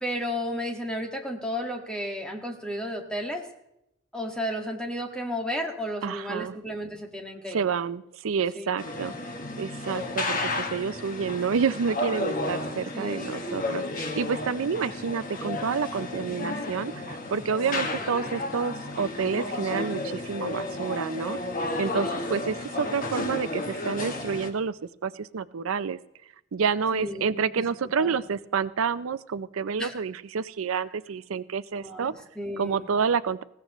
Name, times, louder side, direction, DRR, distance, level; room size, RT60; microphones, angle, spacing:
voice 1, 0.0-3.5 4.1-7.6 8.5-8.8 12.9-13.6 17.6-17.8 18.1-18.5 21.9-22.1 26.9-27.7 28.0-28.1 29.8-30.0 31.7-32.9, equal, 5° left, 2 dB, 1.8 m, -33 dB
voice 2, 6.0-6.5 7.5-9.1 9.6-26.0 26.5-32.1 32.6-33.4, right 6 dB, 85° right, 15 dB, 0.5 m, -29 dB
sound 1, 8.8-24.5, left 2 dB, 40° left, 1.7 m, -32 dB
20.5 x 16.5 x 3.1 m, 0.82 s
head